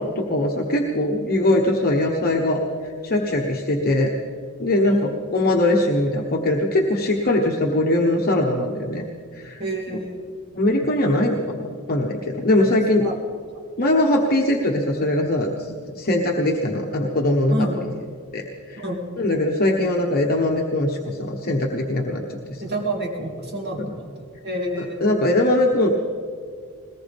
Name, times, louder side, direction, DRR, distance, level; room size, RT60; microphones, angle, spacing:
voice 1, 0.0-4.1 4.6-9.1 9.3-9.6 10.5-13.0 13.8-17.7 18.3-18.8 19.2-22.7 23.8-23.9 24.8-25.9, left 1 dB, 45° left, -1 dB, 1.2 m, -21 dB
voice 2, 4.8-5.1 9.6-10.3 13.0-13.2 17.5-17.9 18.8-19.0 22.6-25.1, right 1 dB, 50° right, 0 dB, 2.5 m, -29 dB
21.0 x 19.0 x 3.6 m, 2.1 s
head